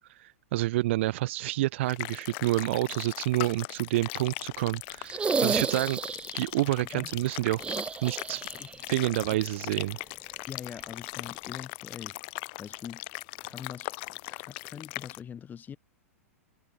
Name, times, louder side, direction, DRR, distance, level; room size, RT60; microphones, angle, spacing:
voice 1, 0.0-6.0 6.3-7.6 8.0-8.4 8.9-10.0, right 17 dB, 50° right, 0.5 m, -28 dB
sound 1, 1.9-15.2, left 30 dB, 45° left, 0.5 m, -39 dB
sound 2, 5.0-6.5 7.6-8.8 9.0-9.1 10.7-10.8, right 5 dB, 15° right, 1.0 m, -31 dB
voice 2, 10.5-12.2 12.6-13.0 13.4-13.9 14.2-15.8, left 8 dB, 20° left, 5.4 m, -43 dB
figure-of-eight pair, 100°, 8 cm